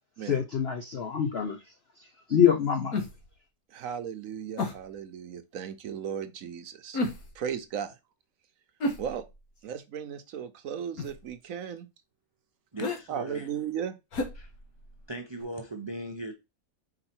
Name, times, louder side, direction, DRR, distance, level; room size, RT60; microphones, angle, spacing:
voice 1, 0.2-1.6 2.0-3.0, left 8 dB, 55° left, 0.8 m, -26 dB
sound 1, 2.9-3.4 4.6-4.9 6.9-7.5 8.8-9.6 11.0-11.3 12.8-13.0 14.1-15.1 15.4-15.5, left 2 dB, 75° left, 1.8 m, -33 dB
voice 2, 3.7-7.0 7.3-8.0 9.0-9.2 9.6-11.9 13.1-14.0, right 8 dB, 70° right, 1.0 m, -36 dB
voice 3, 12.7-13.5 14.4-14.5 15.1-16.3, right 2 dB, 25° right, 0.7 m, -38 dB
4.8 x 4.4 x 4.4 m
omnidirectional pair, 1.6 m